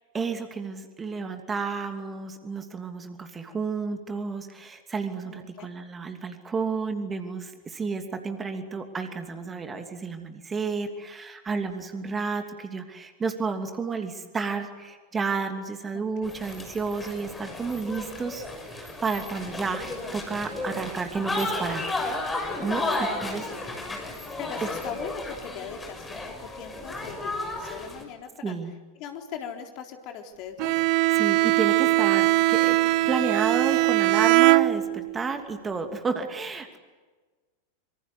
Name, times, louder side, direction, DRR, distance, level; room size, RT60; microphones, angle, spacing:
voice 1, 0.1-21.9 22.6-22.8 23.2-23.5 27.6-27.8 28.4-28.7 31.1-32.8 33.1-36.8, right 4 dB, 15° right, 6 dB, 2.8 m, -31 dB
voice 2, 5.2-5.7 15.9-16.3 22.7-23.1 24.4-28.5 29.0-30.8 36.7-36.8, left 7 dB, 40° left, 4 dB, 3.8 m, -40 dB
sound 1, 16.2-28.0, left 2 dB, 10° left, 6.4 m, -33 dB
Bowed string instrument, 30.6-35.2, right 19 dB, 45° right, 0.7 m, -21 dB
26.0 x 25.5 x 8.0 m, 1.3 s
figure-of-eight pair, 90°, 0 cm